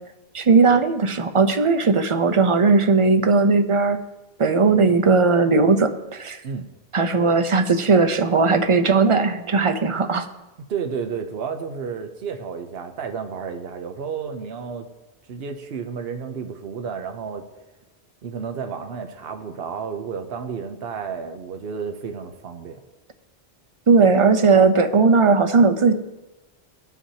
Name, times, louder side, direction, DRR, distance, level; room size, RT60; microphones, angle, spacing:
voice 1, 0.3-4.0 4.4-6.4 6.9-10.3 23.9-25.9, right 4 dB, 35° right, 8 dB, 0.6 m, -17 dB
voice 2, 10.7-14.9 15.3-17.5 18.2-22.8, right 6 dB, 70° right, 6 dB, 1.0 m, -31 dB
17.5 x 5.9 x 2.8 m, 1.0 s
omnidirectional pair, 1.1 m